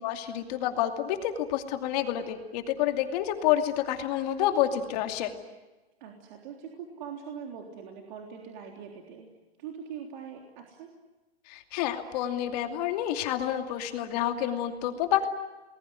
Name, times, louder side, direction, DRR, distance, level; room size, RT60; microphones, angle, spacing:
voice 1, 0.0-5.3 11.5-15.3, left 11 dB, 40° left, 6 dB, 2.6 m, -28 dB
voice 2, 6.0-9.3 9.6-10.9, right 7 dB, 45° right, 2 dB, 3.6 m, -42 dB
29.5 x 21.0 x 9.6 m, 1.1 s
hypercardioid pair, 160°, 31 cm